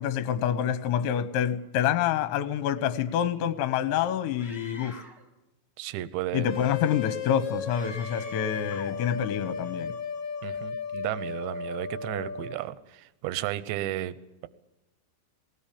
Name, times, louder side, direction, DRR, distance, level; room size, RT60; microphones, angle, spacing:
voice 1, 0.0-5.0 6.3-9.9, left 9 dB, 75° left, 3.0 m, -27 dB
Screaming, 4.4-5.3 7.7-9.0, left 2 dB, ahead, 1.0 m, -46 dB
voice 2, 5.8-6.5 10.4-14.2, right 14 dB, 75° right, 2.8 m, -33 dB
sound 1, 6.4-12.6, left 5 dB, 50° left, 2.5 m, -35 dB
20.0 x 19.0 x 8.6 m
omnidirectional pair, 6.0 m